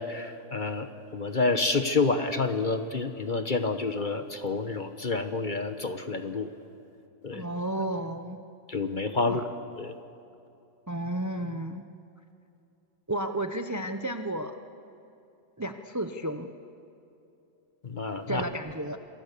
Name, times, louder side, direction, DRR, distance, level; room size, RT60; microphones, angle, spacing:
voice 1, 0.0-6.5 7.2-7.4 8.7-9.4 9.8-9.9 17.8-18.4, left 3 dB, 35° left, 8 dB, 1.0 m, -29 dB
voice 2, 7.3-8.4 9.3-9.4 10.9-11.8 13.1-14.5 15.6-16.5 18.3-19.0, right 1 dB, 20° right, 7 dB, 0.5 m, -32 dB
27.0 x 23.5 x 6.8 m, 2.8 s
omnidirectional pair, 1.7 m